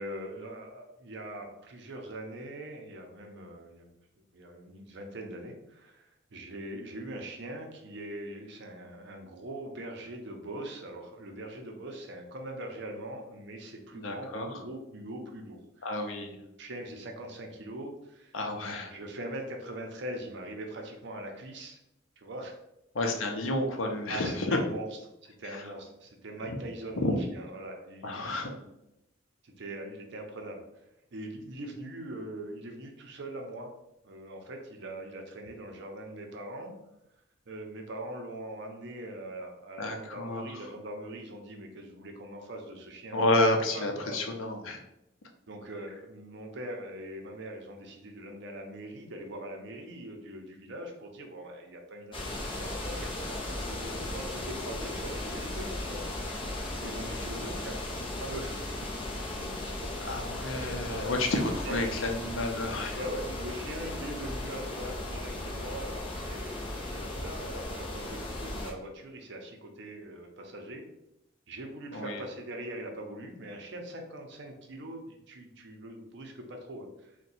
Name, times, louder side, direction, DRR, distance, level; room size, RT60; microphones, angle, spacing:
voice 1, 0.0-4.0 4.3-15.9 16.6-18.4 18.9-21.8 22.2-22.5 24.1-24.9 25.2-28.7 29.4-30.8 31.1-33.7 34.0-36.8 37.5-43.3 43.7-44.3 45.5-56.0 56.8-57.8 58.1-58.7 59.4-59.8 60.4-61.1 61.6-62.0 62.9-70.9 71.5-77.1, right 1 dB, 60° right, 3 dB, 0.6 m, -42 dB
voice 2, 14.0-14.6 15.8-16.4 18.3-19.0 22.9-24.6 25.5-25.6 27.0-27.2 28.0-28.5 39.8-40.6 43.1-44.8 60.0-63.0 71.9-72.2, left 2 dB, 75° left, 3 dB, 0.6 m, -30 dB
sound 1, 52.1-68.7, left 1 dB, 25° left, 0.5 m, -36 dB
2.7 x 2.2 x 4.0 m, 0.86 s
head